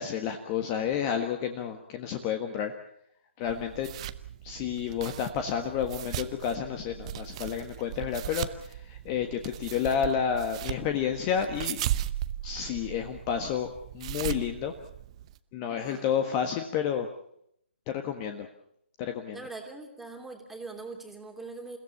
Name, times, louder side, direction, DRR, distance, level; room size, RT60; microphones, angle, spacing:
voice 1, 0.0-2.7 3.4-3.9 4.4-11.8 12.4-13.7 13.9-14.7 15.5-17.1 17.9-18.5 19.0-19.4, left 8 dB, 25° left, 6 dB, 1.5 m, -30 dB
sound 1, 3.5-15.4, right 12 dB, 30° right, 0.9 m, -37 dB
voice 2, 15.8-16.1 19.3-21.8, right 3 dB, ahead, 2 dB, 2.9 m, -42 dB
29.0 x 16.5 x 7.2 m, 0.73 s
figure-of-eight pair, 140°, 7 cm